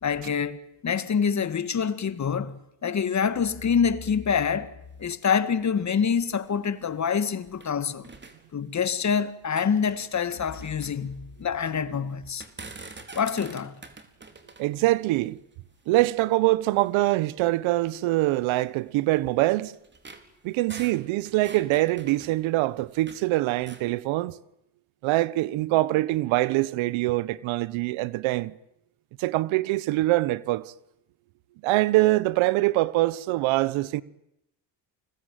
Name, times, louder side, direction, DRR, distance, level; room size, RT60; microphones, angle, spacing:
voice 1, 0.0-4.7 5.0-8.1 8.5-12.4 13.2-13.7, left 6 dB, 35° left, 2.0 m, -26 dB
sound 1, 4.8-7.8 8.0-9.1 9.4-11.8 12.2-16.2 16.9-17.0 17.4-17.6 18.3-23.3 23.6-23.9, right 3 dB, 20° right, 4.1 m, -47 dB
voice 2, 14.6-15.4 15.9-19.7 20.4-24.3 25.0-28.5 29.2-30.7 31.6-34.0, right 18 dB, 75° right, 1.2 m, -24 dB
29.0 x 22.0 x 9.3 m
supercardioid pair, 90°, 47 cm